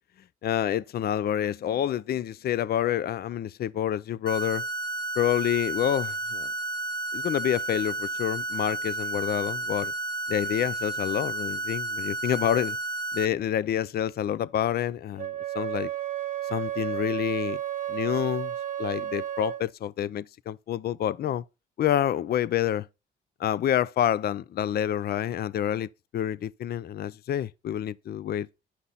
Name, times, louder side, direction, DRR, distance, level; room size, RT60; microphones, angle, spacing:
voice 1, 0.4-4.6 5.2-6.5 7.1-9.9 10.3-12.8 13.1-15.9 16.5-17.6 17.9-18.5 18.8-21.4 21.8-22.9 23.4-28.5, left 10 dB, 50° left, 0.5 m, -28 dB
sound 1, 4.3-13.3, right 2 dB, 20° left, 1.1 m, -32 dB
Wind instrument woodwind instrument, 15.2-19.7, right 12 dB, 40° right, 0.8 m, -32 dB
10.0 x 5.6 x 3.9 m
cardioid pair, 90°, 20 cm